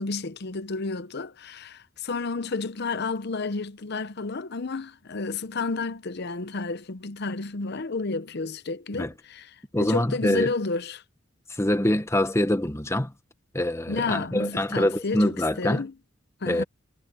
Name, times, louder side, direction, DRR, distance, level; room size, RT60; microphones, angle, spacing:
voice 1, 0.0-9.5 9.8-11.0 13.9-15.9 16.4-16.6, left 3 dB, 55° left, 0.8 m, -31 dB
voice 2, 9.7-10.5 11.5-13.1 13.5-15.8 16.5-16.6, left 1 dB, 15° left, 1.1 m, -24 dB
head